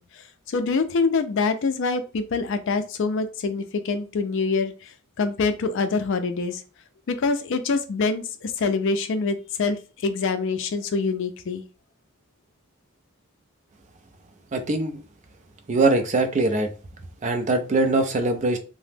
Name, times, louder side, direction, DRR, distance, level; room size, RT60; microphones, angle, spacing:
voice 1, 0.0-6.6 7.1-11.6, left 4 dB, 60° left, 9 dB, 0.4 m, -25 dB
voice 2, 14.5-15.0 15.7-16.7 17.2-18.6, right 2 dB, 35° right, 6 dB, 0.4 m, -22 dB
2.9 x 2.0 x 3.3 m, 0.34 s
head